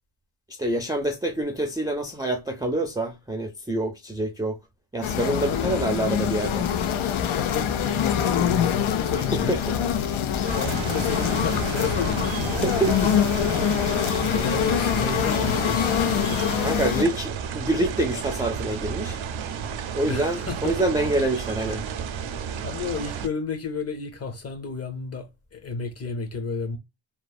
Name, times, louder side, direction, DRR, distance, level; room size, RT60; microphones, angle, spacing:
voice 1, 0.6-4.6 4.9-6.7 9.3-9.7 12.6-13.2 14.0-14.3 16.6-19.2 19.9-21.8, right 1 dB, 10° right, 0.4 m, -26 dB
sound 1, 5.0-17.1, left 9 dB, 90° left, 0.6 m, -24 dB
voice 2, 5.1-5.8 7.3-9.7 10.6-12.3 12.8-12.9 14.2-16.5 20.1-20.8 22.6-26.8, left 5 dB, 30° left, 0.8 m, -32 dB
sound 2, 10.5-23.3, right 7 dB, 80° right, 0.5 m, -32 dB
3.1 x 2.1 x 2.2 m
wide cardioid pair, 105°, 47 cm